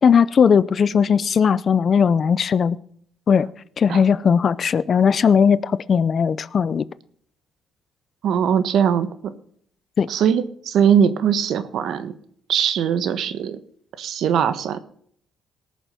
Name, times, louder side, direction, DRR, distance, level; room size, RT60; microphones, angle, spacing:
voice 1, 0.0-2.8 3.3-3.5 3.8-6.9 10.0-10.1, left 6 dB, 50° left, 0.6 m, -18 dB
voice 2, 8.2-9.3 10.1-12.1 12.5-13.6 14.0-14.8, right 8 dB, 75° right, 1.3 m, -20 dB
18.5 x 6.9 x 5.8 m
cardioid pair, 90°, 0 cm